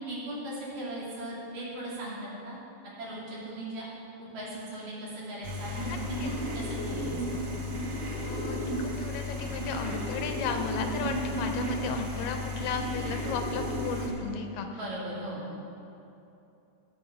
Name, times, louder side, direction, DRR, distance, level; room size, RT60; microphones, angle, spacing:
voice 1, 0.1-2.6 3.0-3.8 4.2-7.1 14.7-15.5, right 1 dB, 65° right, -7 dB, 4.4 m, -38 dB
sound 1, 5.4-14.1, left 1 dB, 45° right, 1.5 m, -33 dB
voice 2, 5.9-6.3 8.2-14.7 15.5-15.6, left 5 dB, 80° left, 5 dB, 2.3 m, -35 dB
17.5 x 6.4 x 5.4 m, 2.8 s
omnidirectional pair, 4.2 m